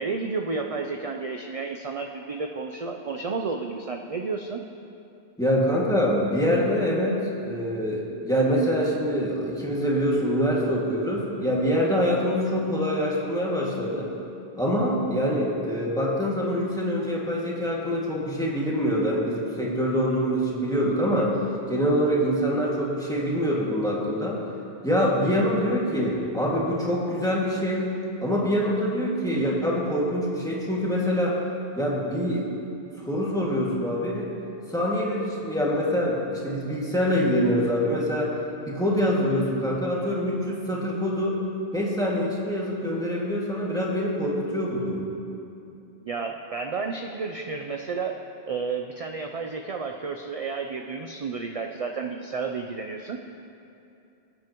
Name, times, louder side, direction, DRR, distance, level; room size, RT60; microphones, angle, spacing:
voice 1, 0.0-4.6 46.0-48.1 48.5-53.2, right 4 dB, 45° right, 3 dB, 0.5 m, -31 dB
voice 2, 5.4-14.1 14.6-21.3 21.7-24.4 24.8-27.9 28.2-31.4 31.8-32.5 33.0-34.3 34.7-38.3 38.7-41.4 41.7-45.1, equal, 5° left, -5 dB, 2.0 m, -25 dB
23.0 x 9.2 x 3.0 m, 2.7 s
omnidirectional pair, 1.1 m